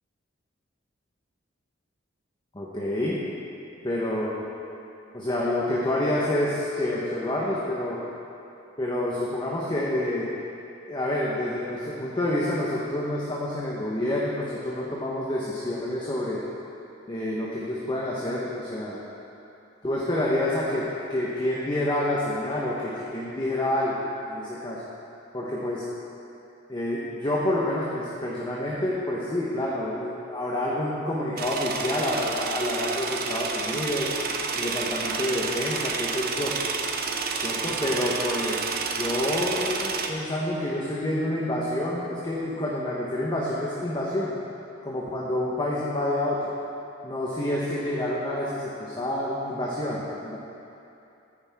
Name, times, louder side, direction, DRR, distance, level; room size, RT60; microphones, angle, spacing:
voice 1, 2.5-3.2 3.8-4.4 5.1-8.0 8.8-10.3 10.9-16.4 17.1-19.0 19.8-24.8 25.3-25.8 26.7-34.1 34.5-36.6 37.4-44.3 44.8-46.5 47.0-50.4, left 1 dB, 20° left, -6 dB, 1.1 m, -28 dB
sound 1, 31.4-40.1, right 5 dB, 45° right, 0.7 m, -30 dB
14.0 x 9.6 x 3.6 m, 2.7 s
head